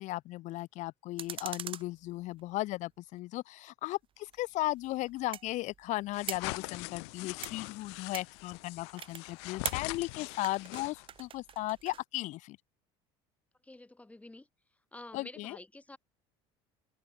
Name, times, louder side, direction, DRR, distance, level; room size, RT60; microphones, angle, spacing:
voice 1, 0.0-12.6 15.1-15.6, left 18 dB, 60° left, 1.0 m, -36 dB
sound 1, 1.2-2.7 4.2-12.0, right 9 dB, 40° right, 1.4 m, -44 dB
sound 2, 6.1-11.2, left 30 dB, 80° left, 2.3 m, -42 dB
voice 2, 13.6-14.5 14.9-16.0, left 2 dB, 10° left, 3.5 m, -49 dB
supercardioid pair, 95°, 14 cm